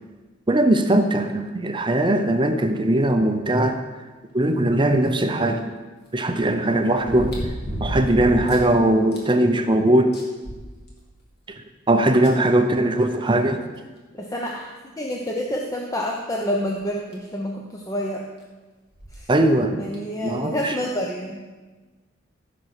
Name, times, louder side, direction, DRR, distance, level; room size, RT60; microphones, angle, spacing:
voice 1, 0.5-3.8 4.3-5.7 6.1-7.3 7.8-10.2 11.5-13.6 19.3-19.8 20.2-20.8, right 1 dB, 25° right, 7 dB, 0.6 m, -20 dB
sound 1, 5.1-5.2 7.0-8.7 9.1-9.2 9.7-9.8 10.1-11.2 12.2-12.3 13.8-13.9 14.4-14.5 15.3-15.5 16.8-16.9 17.1-17.2 18.9-19.2 19.9-20.0, right 1 dB, 50° left, 2.3 m, -31 dB
voice 2, 14.1-14.7 15.0-18.3 19.1-19.3 19.8-21.4, equal, 15° left, -1 dB, 0.8 m, -28 dB
15.0 x 6.1 x 4.8 m, 1.3 s
head